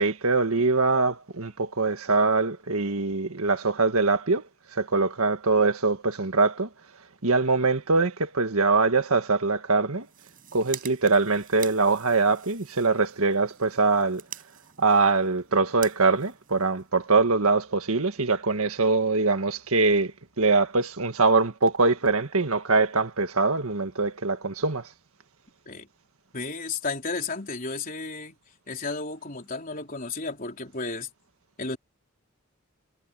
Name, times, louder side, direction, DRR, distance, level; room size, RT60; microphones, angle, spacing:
voice 1, 0.0-4.4 4.7-6.7 7.2-10.1 10.5-14.2 14.8-24.9, right 3 dB, 75° right, 1.8 m, -23 dB
sound 1, 9.9-17.2, right 10 dB, 40° right, 6.3 m, -46 dB
voice 2, 26.3-28.4 28.7-31.1 31.6-31.8, left 3 dB, 40° left, 4.2 m, -33 dB
head